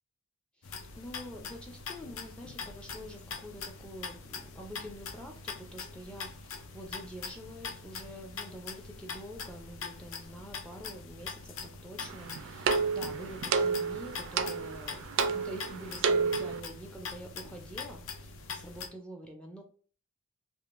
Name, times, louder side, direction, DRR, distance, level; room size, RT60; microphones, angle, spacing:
sound 1, 0.6-18.9, left 5 dB, 65° left, 0.5 m, -43 dB
voice 1, 0.6-19.6, equal, 5° left, 2 dB, 0.4 m, -46 dB
sound 2, 12.0-16.6, right 5 dB, 60° right, 0.3 m, -31 dB
3.5 x 2.4 x 2.4 m, 0.43 s
head